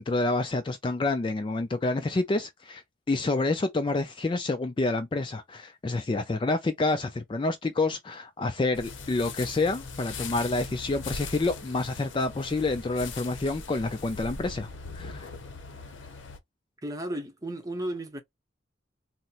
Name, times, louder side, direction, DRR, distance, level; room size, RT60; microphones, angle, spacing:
voice 1, 0.0-2.8 3.1-14.7 14.9-15.3, left 2 dB, 25° left, 0.3 m, -28 dB
sound 1, 8.7-16.4, left 4 dB, 80° left, 0.7 m, -40 dB
voice 2, 16.8-18.2, right 1 dB, 20° right, 0.7 m, -34 dB
4.1 x 2.0 x 2.4 m
head